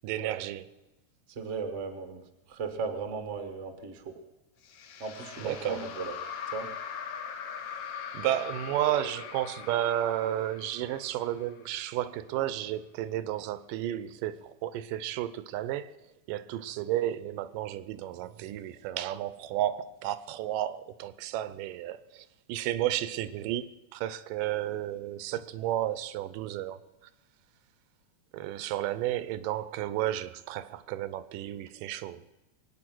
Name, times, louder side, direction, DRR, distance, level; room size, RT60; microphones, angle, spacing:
voice 1, 0.0-0.7 5.4-5.9 8.1-15.9 16.3-26.8 28.3-32.2, right 12 dB, 85° right, 2.3 m, -32 dB
voice 2, 1.3-2.2 2.5-4.1 5.0-6.1 6.5-6.7, right 5 dB, 50° right, 0.8 m, -36 dB
sound 1, 4.6-11.9, left 7 dB, 65° left, 2.3 m, -41 dB
23.0 x 9.2 x 6.2 m
omnidirectional pair, 3.8 m